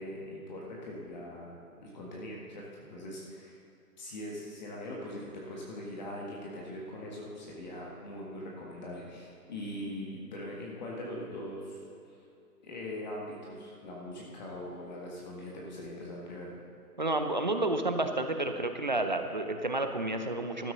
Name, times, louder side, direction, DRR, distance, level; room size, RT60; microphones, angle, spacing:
voice 1, 0.0-3.6 4.0-11.8 12.6-16.5, left 1 dB, 30° left, -3 dB, 1.6 m, -41 dB
voice 2, 17.0-20.7, right 2 dB, 30° right, 6 dB, 0.5 m, -30 dB
14.5 x 12.5 x 3.9 m, 2.6 s
figure-of-eight pair, 150°, 47 cm